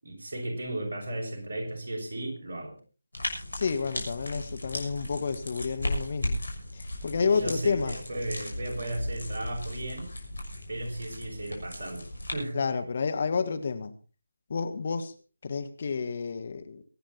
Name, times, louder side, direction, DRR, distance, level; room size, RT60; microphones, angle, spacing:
voice 1, 0.0-2.8 7.1-10.1 10.7-12.6, right 1 dB, 45° right, 0 dB, 6.3 m, -35 dB
sound 1, 3.1-12.3, left 1 dB, 70° left, 6.3 m, -36 dB
voice 2, 3.5-6.4 6.7-7.9 12.5-13.9 14.5-15.1 15.4-16.8, left 5 dB, 40° left, 9 dB, 1.5 m, -30 dB
23.0 x 9.7 x 4.3 m, 0.36 s
figure-of-eight pair, 155°, 0 cm